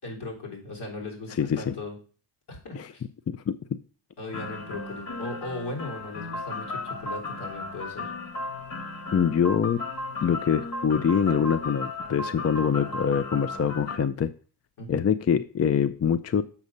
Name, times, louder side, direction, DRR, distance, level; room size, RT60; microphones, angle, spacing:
voice 1, 0.0-2.0 2.5-3.1 4.2-8.1 14.8-15.0, left 2 dB, 80° left, -1 dB, 3.7 m, -38 dB
voice 2, 1.4-1.7 2.8-2.9 3.3-3.6 9.1-9.8 10.2-14.3 14.9-16.4, left 7 dB, 40° left, 13 dB, 0.5 m, -24 dB
sound 1, 4.3-14.0, left 2 dB, 55° left, 2.3 m, -35 dB
7.2 x 5.3 x 6.6 m, 0.40 s
cardioid pair, 80°, 41 cm